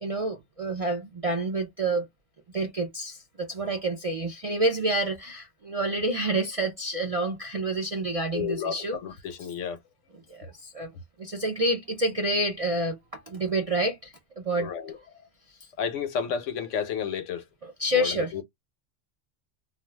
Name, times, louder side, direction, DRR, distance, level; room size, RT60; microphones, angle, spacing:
voice 1, 0.0-2.1 2.5-9.0 10.3-10.9 11.2-14.7 17.8-18.3, right 1 dB, 55° right, 0.3 m, -28 dB
voice 2, 8.3-9.8 14.6-15.3 15.8-17.4 17.9-18.4, left 7 dB, 85° left, 1.0 m, -32 dB
2.4 x 2.3 x 3.2 m
omnidirectional pair, 1.2 m